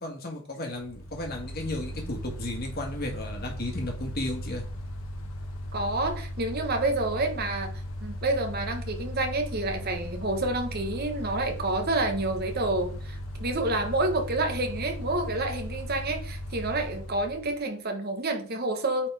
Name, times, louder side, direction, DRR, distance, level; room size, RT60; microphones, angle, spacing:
voice 1, 0.0-4.6, left 1 dB, 50° left, 1 dB, 1.7 m, -34 dB
Mechanical fan, 0.8-17.6, equal, 80° left, 1.1 m, -37 dB
voice 2, 5.7-19.1, right 2 dB, 50° right, 4 dB, 1.3 m, -29 dB
8.8 x 4.1 x 3.5 m, 0.43 s
head